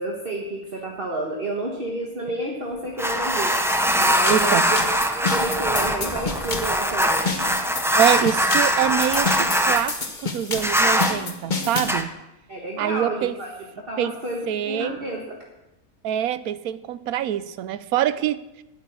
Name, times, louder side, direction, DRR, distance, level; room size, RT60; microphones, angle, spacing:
voice 1, 0.0-3.5 4.0-7.3 12.5-13.5 13.9-15.2, right 2 dB, 40° right, -2 dB, 1.8 m, -30 dB
sound 1, 3.0-9.8 10.6-11.1 11.8-12.0, equal, ahead, 0.6 m, -22 dB
sound 2, 4.0-12.0, left 4 dB, 35° left, 1.2 m, -30 dB
voice 2, 4.3-4.8 7.2-7.6 7.9-12.1 12.8-13.3 14.0-14.1 14.5-15.0 16.0-18.6, right 11 dB, 90° right, 15 dB, 1.1 m, -25 dB
10.0 x 8.7 x 8.1 m, 0.96 s
omnidirectional pair, 1.5 m